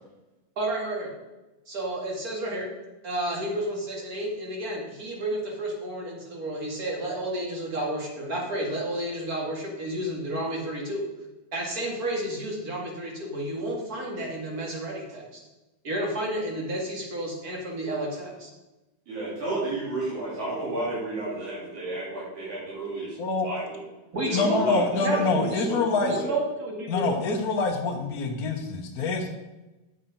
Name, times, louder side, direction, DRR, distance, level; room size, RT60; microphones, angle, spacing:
voice 1, 0.6-1.1 1.7-2.7 3.0-11.0 11.5-15.4 15.8-18.5 24.1-25.6 26.0-27.3, right 1 dB, 30° right, -1 dB, 2.4 m, -31 dB
voice 2, 19.1-23.2 23.4-23.8 24.3-26.3, right 2 dB, 75° right, -8 dB, 4.7 m, -32 dB
voice 3, 24.3-26.1 26.9-29.3, left 4 dB, 70° left, 2 dB, 0.8 m, -26 dB
10.0 x 7.3 x 5.4 m, 1.1 s
omnidirectional pair, 3.3 m